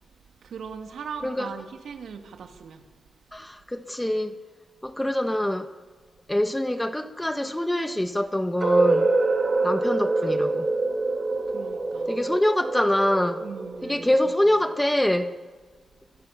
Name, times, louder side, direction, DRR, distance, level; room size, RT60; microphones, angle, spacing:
voice 1, 0.4-2.8 11.4-12.2 13.4-14.1, right 6 dB, 65° right, 2.9 m, -39 dB
voice 2, 3.3-4.4 4.8-5.7 6.3-9.1 9.6-10.7 12.1-13.5 13.8-15.3, left 1 dB, 5° left, 1.1 m, -25 dB
sound 1, 8.6-14.5, right 3 dB, 30° right, 2.8 m, -25 dB
30.0 x 23.5 x 7.0 m
wide cardioid pair, 175°, 0 cm